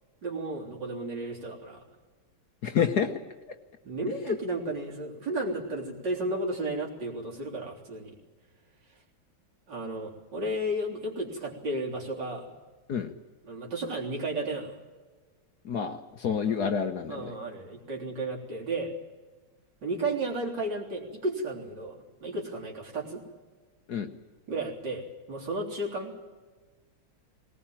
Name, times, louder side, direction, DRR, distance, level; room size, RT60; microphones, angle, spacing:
voice 1, 0.2-1.8 3.8-8.2 9.7-12.6 13.4-14.8 16.4-16.6 17.1-18.9 19.8-23.2 24.5-26.1, right 1 dB, 55° right, -1 dB, 4.3 m, -33 dB
voice 2, 2.6-3.1 12.9-13.1 15.6-17.3 23.9-24.1, left 7 dB, 55° left, 7 dB, 1.4 m, -28 dB
20.0 x 19.0 x 8.9 m, 1.4 s
omnidirectional pair, 2.3 m